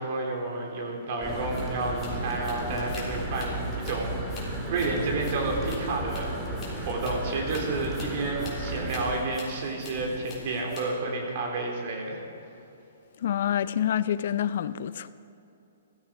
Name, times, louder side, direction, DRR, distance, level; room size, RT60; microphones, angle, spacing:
voice 1, 0.0-6.3 6.8-12.2, right 2 dB, 50° right, 3.5 m, -30 dB
sound 1, 1.2-11.0, left 2 dB, 20° left, 3.7 m, -46 dB
sound 2, 1.2-9.2, right 2 dB, 15° right, 2.2 m, -34 dB
voice 2, 13.2-15.1, left 10 dB, 60° left, 0.5 m, -27 dB
16.0 x 13.5 x 5.1 m
hypercardioid pair, 150°, 0 cm